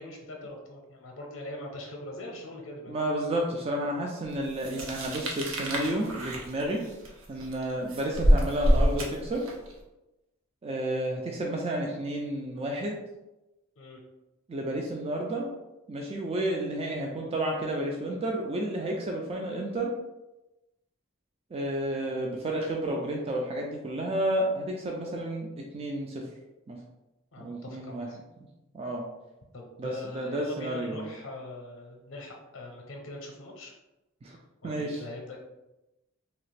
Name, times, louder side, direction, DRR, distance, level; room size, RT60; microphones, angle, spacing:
voice 1, 0.0-2.9 13.8-14.0 27.3-28.2 29.5-33.7 34.6-35.4, left 1 dB, 70° left, 1 dB, 0.6 m, -42 dB
voice 2, 2.9-6.8 7.3-9.4 10.6-13.0 14.5-15.5 15.9-19.9 21.5-26.2 26.7-26.8 27.4-28.1 28.7-29.0 29.8-31.1 34.2-34.4 34.6-35.0, right 1 dB, 30° right, 0 dB, 0.3 m, -31 dB
sound 1, 4.6-9.7, equal, 85° right, 0.6 m, -26 dB
2.9 x 2.4 x 3.2 m, 0.99 s
head